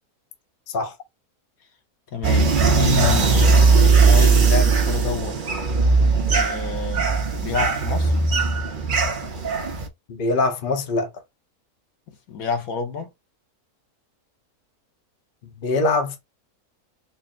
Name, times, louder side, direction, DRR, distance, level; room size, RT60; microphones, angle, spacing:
voice 1, 2.1-5.4 6.3-7.1 7.4-8.2 12.3-13.1, left 6 dB, 70° left, 1.3 m, -29 dB
sound 1, 2.2-9.9, right 4 dB, 50° right, 0.6 m, -18 dB
voice 2, 10.1-11.1 15.4-16.2, left 3 dB, 45° left, 0.7 m, -23 dB
4.2 x 2.0 x 3.6 m
omnidirectional pair, 1.6 m